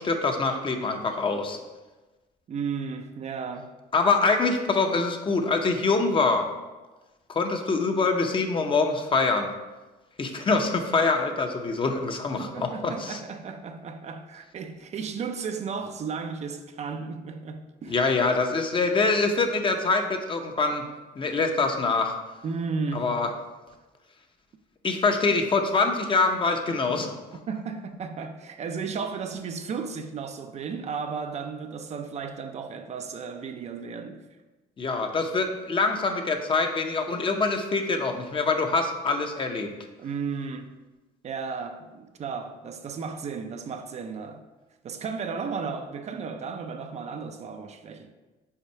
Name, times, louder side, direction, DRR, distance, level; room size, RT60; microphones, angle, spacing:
voice 1, 0.0-1.6 3.9-6.5 7.3-9.5 10.2-13.2 17.9-20.8 21.2-22.1 22.9-23.3 24.8-27.1 34.8-39.7, left 3 dB, 30° left, 0.7 m, -24 dB
voice 2, 2.5-3.7 12.4-18.0 22.4-23.2 27.5-34.3 40.0-40.7 41.2-44.4 44.8-48.1, right 5 dB, 40° right, 0.4 m, -34 dB
5.7 x 3.9 x 4.5 m
cardioid pair, 110°, 17 cm